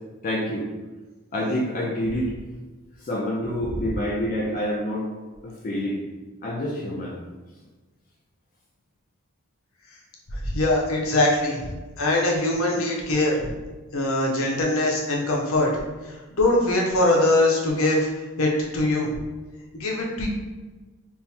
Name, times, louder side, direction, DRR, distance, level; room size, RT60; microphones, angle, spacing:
voice 1, 0.2-0.7 1.3-2.3 3.0-5.1 5.4-6.0 6.4-7.2, equal, 40° left, -3 dB, 0.5 m, -27 dB
voice 2, 10.4-13.4 13.9-15.7 16.4-18.1 18.4-19.1 19.7-20.3, left 2 dB, 70° left, -2 dB, 0.7 m, -22 dB
3.6 x 2.1 x 4.3 m, 1.2 s
head